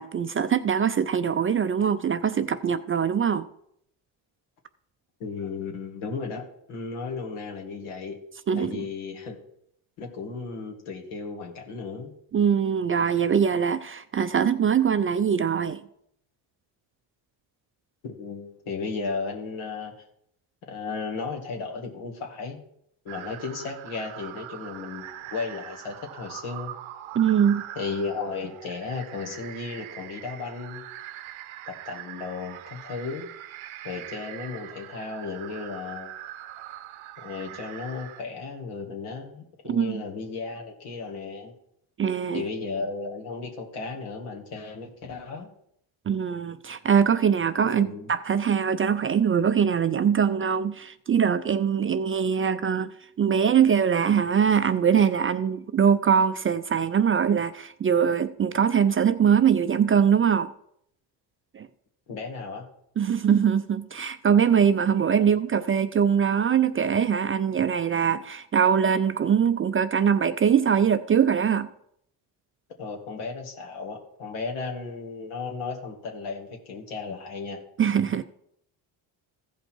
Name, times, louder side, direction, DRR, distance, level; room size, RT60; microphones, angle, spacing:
voice 1, 0.0-3.5 8.5-8.9 12.3-15.8 27.1-27.6 39.6-40.0 42.0-42.4 46.1-60.5 61.5-61.7 63.0-71.7 77.8-78.2, right 7 dB, 30° right, 0.4 m, -22 dB
voice 2, 5.2-8.2 8.6-9.4 10.0-12.1 18.0-19.9 20.7-22.6 23.1-26.7 27.8-30.8 31.7-33.3 33.8-36.1 37.2-41.5 42.3-45.5 47.6-48.1 62.1-62.7 72.8-77.6, left 4 dB, 80° left, 2.1 m, -35 dB
sound 1, 23.1-38.2, right 12 dB, 80° right, 0.8 m, -42 dB
15.0 x 5.3 x 4.5 m
cardioid pair, 85°, 48 cm